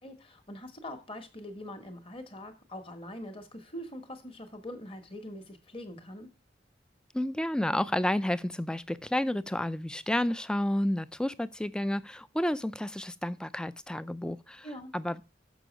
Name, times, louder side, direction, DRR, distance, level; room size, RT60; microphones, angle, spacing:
voice 1, 0.0-6.3 14.6-14.9, left 1 dB, 30° left, 1.2 m, -43 dB
voice 2, 7.1-14.7 14.9-15.2, left 1 dB, 5° left, 0.3 m, -30 dB
6.7 x 6.2 x 5.1 m
head